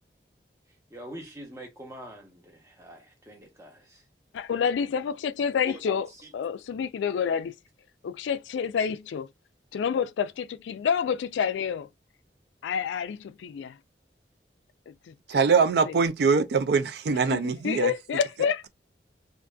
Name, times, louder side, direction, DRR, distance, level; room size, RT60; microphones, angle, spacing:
voice 1, 0.9-4.0 5.7-6.3, right 1 dB, 15° right, 0.7 m, -44 dB
voice 2, 4.3-6.1 6.3-7.5 8.0-9.3 9.7-11.9 12.6-13.8 14.9-16.0 17.3-18.7, left 7 dB, 85° left, 0.3 m, -29 dB
voice 3, 15.3-17.9, right 5 dB, 65° right, 0.3 m, -23 dB
2.5 x 2.5 x 2.2 m
head